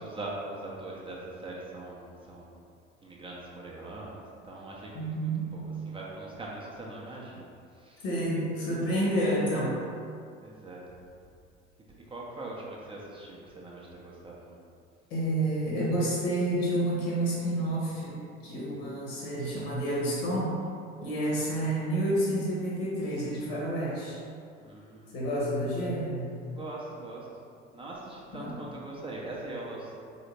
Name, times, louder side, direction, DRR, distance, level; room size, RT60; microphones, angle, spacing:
voice 1, 0.0-2.6 3.0-8.0 10.4-10.8 12.1-14.6 24.6-25.2 26.6-27.3 27.7-30.0, right 2 dB, 15° right, -4 dB, 0.5 m, -42 dB
voice 2, 4.9-5.4 8.0-9.8 15.1-20.6 21.0-24.2 25.1-26.3 28.3-28.6, right 1 dB, 55° left, -5 dB, 1.0 m, -29 dB
3.9 x 2.7 x 3.1 m, 2.4 s
figure-of-eight pair, 65°, 36 cm